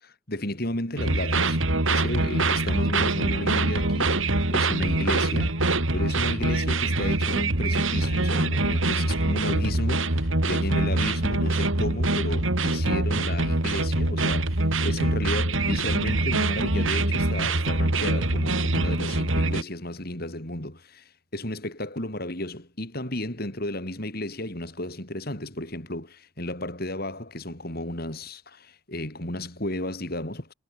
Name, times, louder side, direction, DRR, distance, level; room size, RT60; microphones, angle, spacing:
voice 1, 0.0-30.5, left 1 dB, 50° left, 5.5 m, -33 dB
sound 1, 1.0-19.6, right 2 dB, 80° right, 3.5 m, -24 dB
head